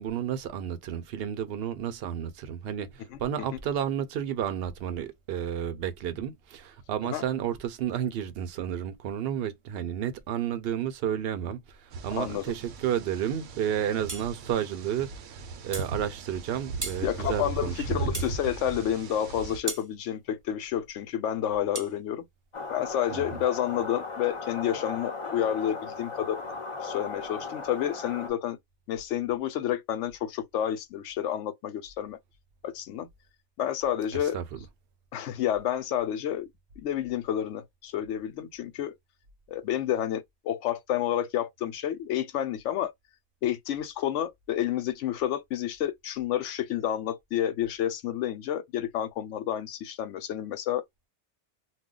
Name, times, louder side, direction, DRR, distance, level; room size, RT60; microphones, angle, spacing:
voice 1, 0.0-18.1 23.1-23.4 34.2-34.6, right 9 dB, 65° right, 0.7 m, -32 dB
sound 1, 11.9-19.6, right 3 dB, 85° right, 0.9 m, -38 dB
voice 2, 12.1-12.4 17.0-22.3 22.7-26.4 26.8-28.6 28.9-32.2 32.6-33.1 33.6-34.4 35.1-36.5 36.8-38.9 39.5-42.9 43.4-50.8, left 11 dB, 85° left, 0.9 m, -30 dB
sound 2, 14.1-14.3 15.7-15.9 16.8-17.0 18.1-18.4 19.7-19.9 21.7-21.9, right 3 dB, 25° right, 0.4 m, -35 dB
sound 3, 22.5-28.3, left 4 dB, 35° left, 0.6 m, -37 dB
2.3 x 2.2 x 3.6 m
omnidirectional pair, 1.2 m